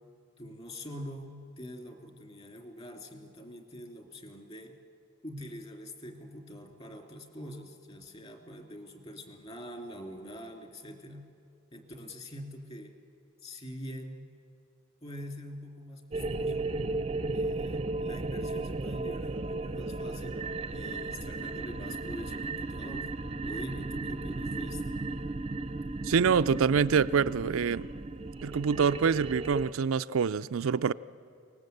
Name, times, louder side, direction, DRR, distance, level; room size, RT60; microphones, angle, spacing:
voice 1, 0.4-4.7 5.2-11.2 11.7-12.9 13.4-14.3 15.0-16.8 17.3-20.4 20.7-23.1 23.4-24.8, equal, 30° left, 2.8 m, -44 dB
sound 1, 16.1-29.7, right 2 dB, 30° right, 0.6 m, -35 dB
voice 2, 26.0-27.9 28.4-30.9, right 6 dB, 85° right, 0.4 m, -26 dB
23.5 x 19.5 x 8.0 m
head